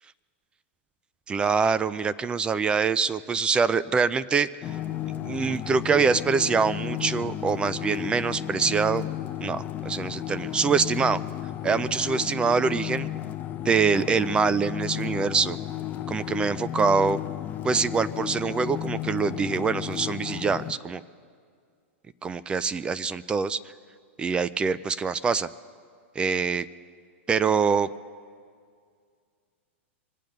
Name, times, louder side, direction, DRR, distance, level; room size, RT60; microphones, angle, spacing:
voice 1, 1.3-4.5 5.1-9.0 9.4-11.2 11.6-13.1 13.6-15.6 16.1-17.2 17.6-21.0 22.2-23.6 24.2-25.5 26.2-26.7 27.3-27.9, right 5 dB, 15° right, 17 dB, 0.3 m, -24 dB
sound 1, 4.6-20.7, left 12 dB, 25° left, 0.6 m, -33 dB
24.0 x 8.7 x 6.4 m, 2.1 s
supercardioid pair, 140°, 7 cm